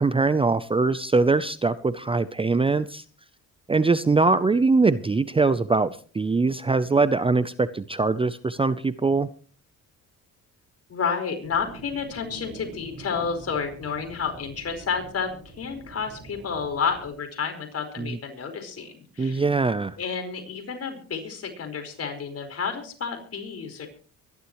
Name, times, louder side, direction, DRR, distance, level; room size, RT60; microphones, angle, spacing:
voice 1, 0.0-3.0 3.7-9.3 18.0-18.1 19.2-20.0, right 3 dB, 15° right, 15 dB, 0.6 m, -22 dB
voice 2, 10.9-15.3 15.6-19.4 20.0-23.9, left 6 dB, 45° left, 5 dB, 4.9 m, -30 dB
sound 1, 11.4-17.1, right 3 dB, 45° right, 6.3 m, -45 dB
24.0 x 11.5 x 3.1 m, 0.41 s
cardioid pair, 85°, 33 cm